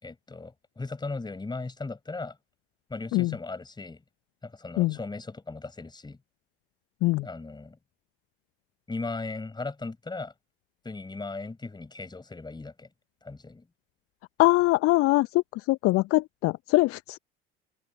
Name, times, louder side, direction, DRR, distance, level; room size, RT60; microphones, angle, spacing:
voice 1, 0.0-2.4 2.9-4.0 4.4-6.2 7.2-7.8 8.9-10.3 10.8-12.9 13.2-13.7, left 3 dB, 15° left, 5.3 m, -37 dB
voice 2, 14.4-17.2, left 20 dB, 45° left, 1.0 m, -23 dB
figure-of-eight pair, 65°, 32 cm